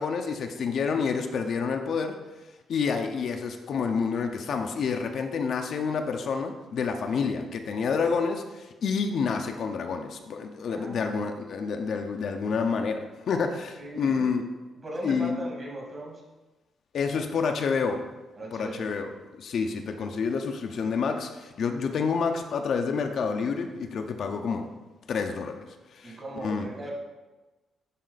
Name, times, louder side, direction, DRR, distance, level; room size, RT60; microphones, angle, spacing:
voice 1, 0.0-2.2 2.7-14.4 15.0-15.4 16.9-18.0 18.5-24.7 25.1-25.6 25.9-26.1 26.4-26.7, left 5 dB, 65° left, 5 dB, 0.6 m, -28 dB
voice 2, 10.7-11.2 13.8-14.2 14.8-16.2 18.4-19.0 26.0-26.9, right 1 dB, 35° right, -1 dB, 2.2 m, -38 dB
11.0 x 3.8 x 4.0 m, 1.2 s
cardioid pair, 100°, 0 cm